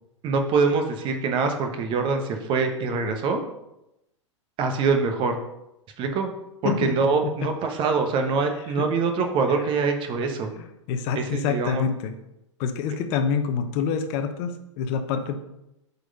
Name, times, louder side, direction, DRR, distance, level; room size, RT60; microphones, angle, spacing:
voice 1, 0.2-3.4 4.6-5.4 6.0-6.3 6.6-10.5 11.1-11.8, right 4 dB, 30° right, 5 dB, 1.1 m, -24 dB
voice 2, 6.6-7.0 7.2-7.5 8.8-8.9 9.5-9.6 10.6-12.1 12.6-15.4, left 6 dB, 40° left, 7 dB, 0.8 m, -27 dB
7.8 x 4.2 x 5.4 m, 0.86 s
figure-of-eight pair, 95°, 16 cm